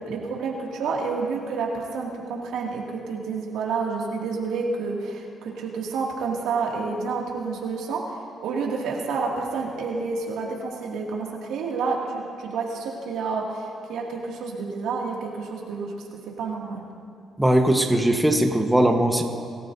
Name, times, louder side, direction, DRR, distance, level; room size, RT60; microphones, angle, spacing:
voice 1, 0.0-16.8, right 4 dB, 85° right, -2 dB, 2.3 m, -29 dB
voice 2, 17.4-19.2, right 1 dB, 5° right, 3 dB, 1.2 m, -19 dB
25.0 x 14.0 x 2.7 m, 2.4 s
cardioid pair, 90°, 0 cm